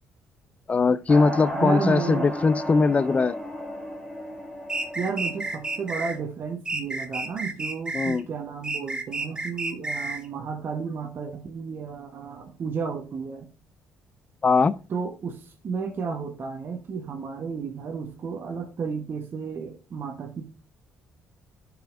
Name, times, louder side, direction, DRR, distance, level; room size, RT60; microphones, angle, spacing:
voice 1, 0.7-3.3 7.9-8.2 14.4-14.8, left 4 dB, 30° left, 0.4 m, -21 dB
sound 1, 1.1-6.3, equal, 10° left, 2.3 m, -34 dB
voice 2, 1.5-2.3 4.9-13.5 14.9-20.5, right 5 dB, 50° right, 1.1 m, -32 dB
sound 2, 4.7-6.2 6.7-8.2 8.6-10.3, right 2 dB, 20° right, 1.0 m, -31 dB
11.5 x 5.0 x 2.5 m
supercardioid pair, 70°, 5 cm